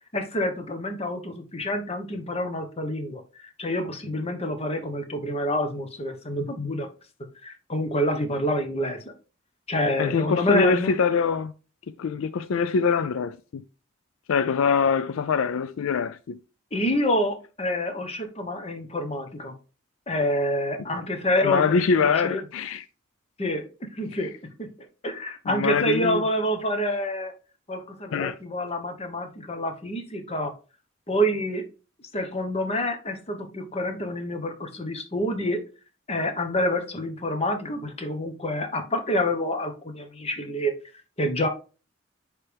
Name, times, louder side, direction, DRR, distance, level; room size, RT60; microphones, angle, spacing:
voice 1, 0.1-6.9 7.4-9.0 9.7-11.0 16.7-19.5 20.1-22.4 23.4-23.6 23.9-24.3 24.6-24.7 25.0-27.3 27.7-30.5 31.1-31.6 32.1-35.6 36.1-40.7 41.2-41.5, equal, 30° left, 1.1 m, -27 dB
voice 2, 10.0-11.5 12.0-13.6 14.3-16.4 21.4-22.8 25.5-26.2 28.1-28.3, left 5 dB, 85° left, 0.4 m, -24 dB
9.9 x 3.4 x 3.4 m
head